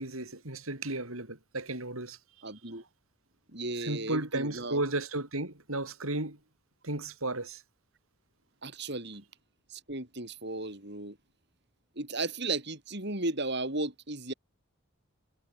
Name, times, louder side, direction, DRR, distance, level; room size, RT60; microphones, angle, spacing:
voice 1, 0.0-2.2 2.7-2.8 3.8-6.4 6.8-7.6, right 2 dB, 75° right, 5.5 m, -34 dB
voice 2, 2.4-2.8 3.5-4.8 8.6-9.2 9.7-11.2 12.0-14.3, right 2 dB, 50° right, 4.7 m, -35 dB
head